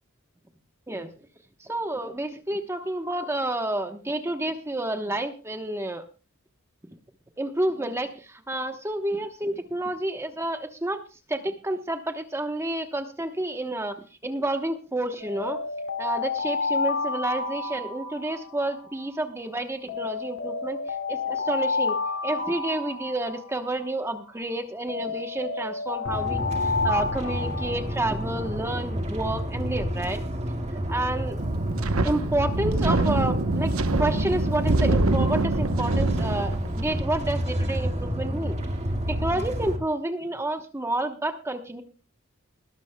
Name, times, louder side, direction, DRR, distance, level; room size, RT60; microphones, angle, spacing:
voice 1, 1.6-6.0 7.4-11.0 11.3-15.6 16.0-20.8 21.1-30.2 30.9-31.4 32.0-33.7 34.0-38.6 39.1-41.8, right 1 dB, 15° right, 6 dB, 1.0 m, -29 dB
Alarm, 15.2-19.3 19.9-24.3 24.9-28.7, left 4 dB, 70° left, 2.5 m, -31 dB
sound 1, 26.1-39.8, equal, 35° right, 1.9 m, -30 dB
Wind, 31.4-37.0, right 2 dB, 80° right, 0.9 m, -25 dB
21.0 x 12.5 x 2.3 m, 0.32 s
head